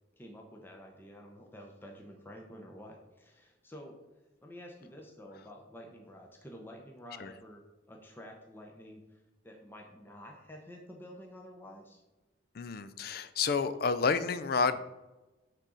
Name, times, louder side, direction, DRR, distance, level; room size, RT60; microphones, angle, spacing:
voice 1, 0.2-4.0 4.4-7.6 7.9-12.0, equal, 10° left, 1 dB, 0.7 m, -50 dB
voice 2, 12.5-14.8, left 5 dB, 50° left, 13 dB, 0.4 m, -30 dB
6.5 x 3.8 x 6.2 m, 1.1 s
head